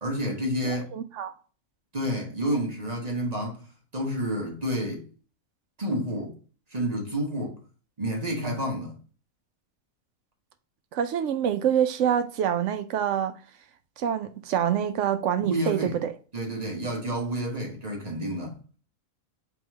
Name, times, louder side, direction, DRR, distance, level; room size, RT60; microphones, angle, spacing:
voice 1, 0.0-0.9 1.9-3.6 3.9-5.0 5.8-6.3 6.7-7.6 8.0-9.0 15.4-16.0 16.3-18.6, equal, 30° right, 1.1 m, -29 dB
voice 2, 0.6-1.3 10.9-13.3 14.0-16.1, right 9 dB, 70° right, 0.8 m, -26 dB
3.7 x 3.0 x 4.6 m
omnidirectional pair, 1.4 m